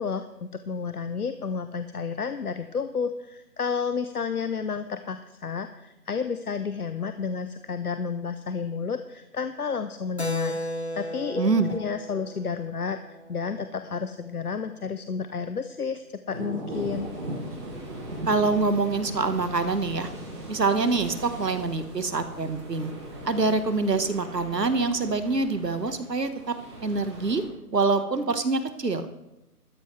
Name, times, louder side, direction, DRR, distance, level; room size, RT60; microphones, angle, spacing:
voice 1, 0.0-17.1, left 5 dB, 65° left, 10 dB, 0.8 m, -31 dB
Keyboard (musical), 10.2-14.3, equal, 45° left, 0.4 m, -36 dB
voice 2, 11.4-11.7 18.3-20.1 20.5-22.9 23.2-26.5 26.8-27.4 27.7-29.1, right 3 dB, 80° right, 10 dB, 1.6 m, -25 dB
sound 1, 16.3-21.4, right 1 dB, 45° right, 3.9 m, -37 dB
sound 2, 16.7-27.5, right 1 dB, 15° right, 2.1 m, -43 dB
15.0 x 13.5 x 3.3 m, 0.94 s
figure-of-eight pair, 165°, 48 cm